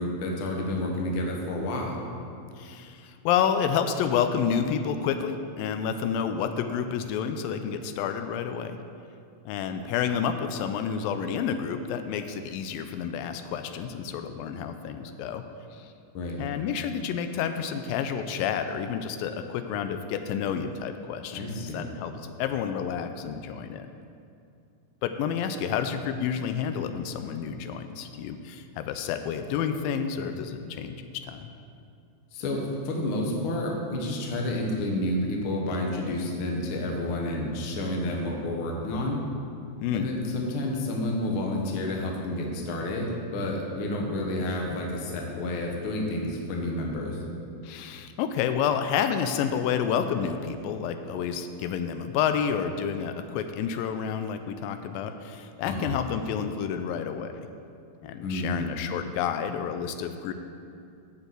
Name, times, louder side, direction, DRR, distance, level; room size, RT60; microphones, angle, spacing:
voice 1, 0.0-2.0 16.1-16.4 21.3-21.9 32.3-39.2 39.9-47.2 55.6-55.9 58.2-58.7, left 1 dB, 60° left, 0 dB, 1.4 m, -30 dB
voice 2, 2.6-8.8 9.5-15.4 15.7-15.9 16.4-21.4 21.7-22.1 22.4-23.9 25.0-31.5 39.8-40.1 47.6-57.5 58.0-60.3, left 7 dB, 85° left, 8 dB, 2.3 m, -29 dB
7.2 x 6.8 x 7.9 m, 2.5 s
omnidirectional pair, 4.1 m